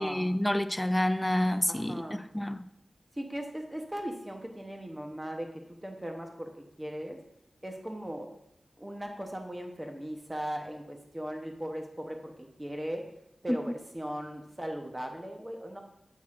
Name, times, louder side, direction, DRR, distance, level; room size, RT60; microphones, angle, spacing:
voice 1, 0.0-2.0 2.3-2.7 13.5-13.6, left 1 dB, 15° left, 11 dB, 0.3 m, -28 dB
voice 2, 1.7-2.2 3.1-7.2 7.6-8.3 8.8-13.0 13.4-15.8, equal, 20° right, 3 dB, 0.8 m, -38 dB
7.3 x 6.1 x 2.4 m, 0.78 s
wide cardioid pair, 60°, 0 cm